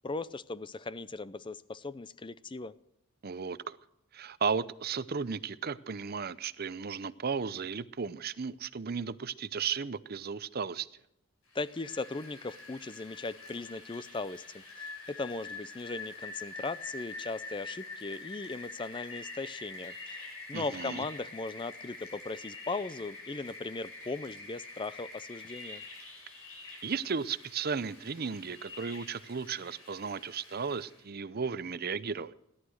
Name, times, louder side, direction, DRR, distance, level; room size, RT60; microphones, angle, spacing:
voice 1, 0.0-2.7 11.5-25.8, left 3 dB, 25° left, 0.5 m, -38 dB
voice 2, 3.2-3.8 4.1-10.9 20.5-21.0 26.8-32.3, right 5 dB, 45° right, 0.6 m, -35 dB
Rain, 11.5-31.0, left 3 dB, 80° left, 6.8 m, -46 dB
17.0 x 11.5 x 6.4 m
head